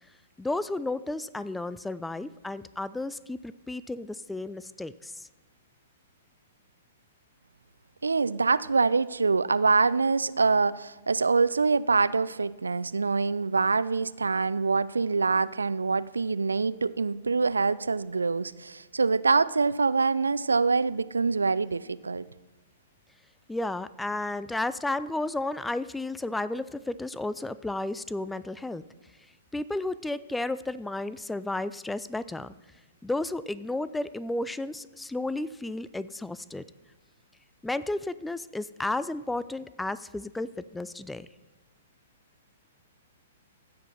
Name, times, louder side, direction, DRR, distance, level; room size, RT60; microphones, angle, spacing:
voice 1, 0.4-5.3 23.5-28.8 29.5-32.5 33.0-36.6 37.6-41.3, left 2 dB, 5° left, 16 dB, 0.3 m, -33 dB
voice 2, 8.0-22.3, right 4 dB, 80° right, 18 dB, 0.3 m, -25 dB
15.5 x 5.1 x 5.7 m, 1.1 s
figure-of-eight pair, 115°, 0 cm